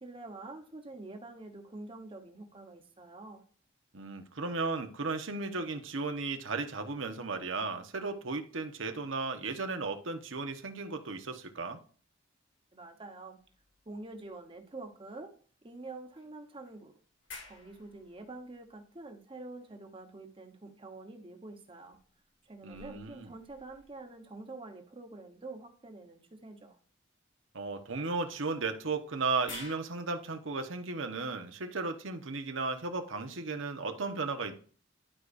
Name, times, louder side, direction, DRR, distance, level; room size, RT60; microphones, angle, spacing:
voice 1, 0.0-3.4 12.7-13.4 13.8-15.3 15.6-17.0 17.4-22.0 22.4-26.8, right 2 dB, 30° right, 5 dB, 1.1 m, -47 dB
voice 2, 3.9-11.8 22.6-23.3 27.5-34.5, right 3 dB, 90° right, 6 dB, 1.1 m, -35 dB
sound 1, 13.4-14.7 15.0-15.1 16.2-19.6 21.4-24.5 26.2-26.4 28.5-29.8, left 4 dB, 70° left, 2.2 m, -53 dB
12.0 x 4.8 x 2.6 m, 0.43 s
head